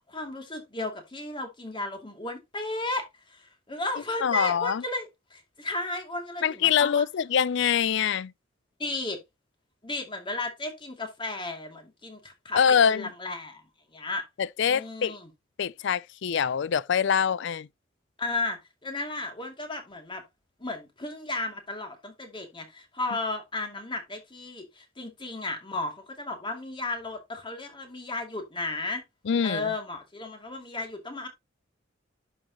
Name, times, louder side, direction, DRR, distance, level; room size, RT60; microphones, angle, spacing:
voice 1, 0.1-7.0 8.8-9.2 9.8-13.6 13.9-14.2 14.6-15.3 18.2-20.2 20.6-29.0 29.4-31.3, left 2 dB, 25° left, 2.4 m, -34 dB
voice 2, 4.2-4.8 6.4-8.3 12.5-13.1 14.4-15.2 15.6-17.7 29.3-29.7, left 7 dB, 65° left, 0.4 m, -24 dB
11.0 x 6.3 x 2.9 m
head